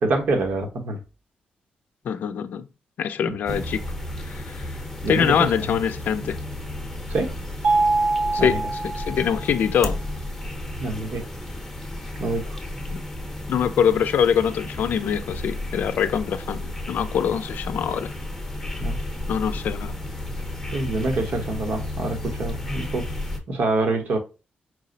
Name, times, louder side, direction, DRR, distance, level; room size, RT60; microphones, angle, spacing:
voice 1, 0.0-1.0 3.3-3.6 5.0-5.5 7.1-7.4 8.4-8.6 10.8-11.2 12.2-12.6 18.8-19.0 20.7-23.1 23.5-24.2, right 2 dB, 65° right, 1.1 m, -26 dB
voice 2, 2.1-2.6 3.0-3.8 4.3-4.6 5.1-6.4 8.3-8.6 9.0-10.0 12.9-13.0 13.5-18.1 19.3-20.0, left 8 dB, 75° left, 0.4 m, -24 dB
sound 1, 3.5-23.4, left 1 dB, 5° left, 0.8 m, -33 dB
Mallet percussion, 7.6-9.6, right 3 dB, 85° right, 0.8 m, -23 dB
4.8 x 2.0 x 3.8 m
wide cardioid pair, 135°, 3 cm